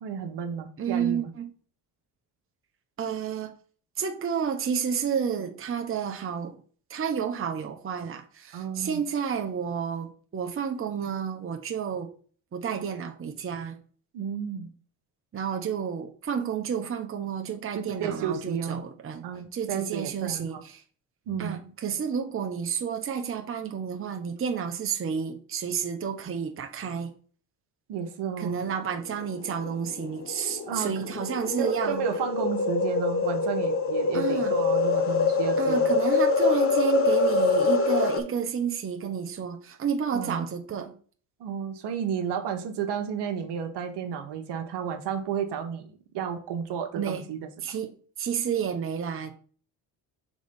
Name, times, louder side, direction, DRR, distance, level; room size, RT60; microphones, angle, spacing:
voice 1, 0.0-1.3 8.5-9.0 14.1-14.7 17.7-18.9 19.2-20.6 21.3-21.6 27.9-28.6 30.6-30.9 31.6-36.0 40.1-40.5 41.4-47.4, right 7 dB, 65° right, 1.2 m, -32 dB
voice 2, 0.8-1.5 3.0-3.5 4.0-6.6 6.9-12.1 12.5-13.8 15.3-19.3 19.5-20.8 21.4-27.1 28.4-32.1 34.1-34.6 35.6-41.0 47.0-47.3 47.6-47.9 48.2-49.3, right 7 dB, 30° right, 0.9 m, -30 dB
windy breath long, 29.1-38.2, left 4 dB, 30° left, 1.2 m, -25 dB
5.2 x 3.9 x 5.2 m
supercardioid pair, 70°, 45 cm